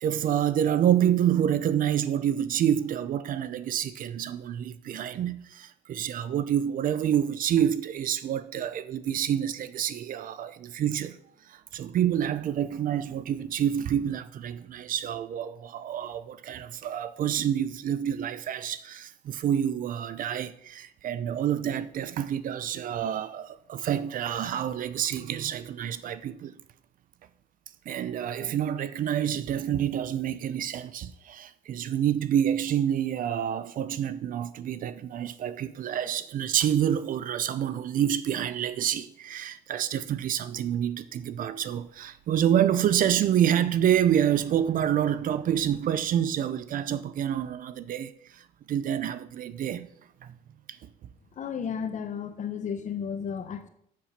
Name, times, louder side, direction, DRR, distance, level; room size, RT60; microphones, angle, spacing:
voice 1, 0.0-11.2 11.5-26.6 27.9-49.9 50.2-50.3 50.7-50.9, right 10 dB, 55° right, 0.6 m, -28 dB
voice 2, 51.3-53.7, left 7 dB, 45° left, 1.2 m, -33 dB
7.4 x 6.8 x 5.8 m
cardioid pair, 110°, 17 cm